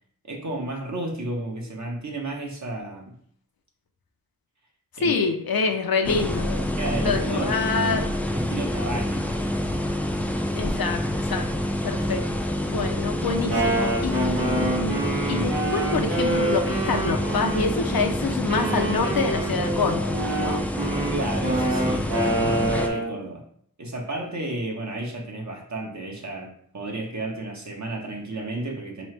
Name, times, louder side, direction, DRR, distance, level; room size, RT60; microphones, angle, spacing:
voice 1, 0.2-3.2 5.0-5.3 5.7-5.8 6.8-7.6 8.3-9.5 21.1-23.4 23.8-29.1, right 2 dB, 55° right, 1 dB, 0.9 m, -32 dB
voice 2, 5.0-6.7 6.9-8.1 10.5-20.6, left 4 dB, 85° left, 5 dB, 0.6 m, -27 dB
sound 1, 6.0-22.9, left 1 dB, 5° left, 0.3 m, -27 dB
Wind instrument woodwind instrument, 13.3-18.0 18.5-23.2, right 2 dB, 85° right, 1.0 m, -27 dB
3.7 x 3.1 x 3.2 m, 0.62 s
wide cardioid pair, 60°, 35 cm